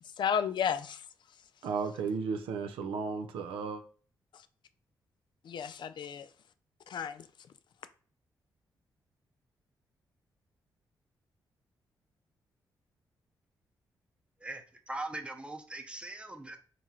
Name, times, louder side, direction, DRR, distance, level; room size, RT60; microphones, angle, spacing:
voice 1, 0.0-1.0 4.3-4.5 5.4-6.3 6.9-7.3, left 7 dB, 60° left, 0.3 m, -33 dB
voice 2, 1.6-3.8, right 5 dB, 85° right, 0.4 m, -34 dB
voice 3, 14.4-16.6, right 2 dB, 15° right, 0.7 m, -41 dB
2.9 x 2.8 x 3.7 m
supercardioid pair, 55°, 9 cm